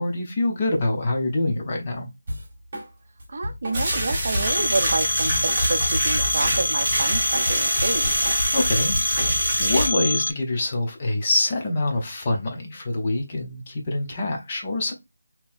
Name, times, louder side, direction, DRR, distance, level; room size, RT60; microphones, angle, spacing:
voice 1, 0.0-2.1 8.5-14.9, left 2 dB, 25° left, 0.6 m, -25 dB
Drum kit, 2.3-2.9 3.2-6.6 6.9-9.6, equal, 30° right, 1.7 m, -31 dB
voice 2, 3.3-8.1, right 3 dB, 45° right, 0.5 m, -28 dB
sound 1, 3.7-9.9, right 1 dB, 10° right, 1.0 m, -26 dB
Telephone, 4.5-10.3, left 2 dB, 80° left, 0.4 m, -25 dB
3.7 x 2.8 x 2.5 m
figure-of-eight pair, 175°, 0 cm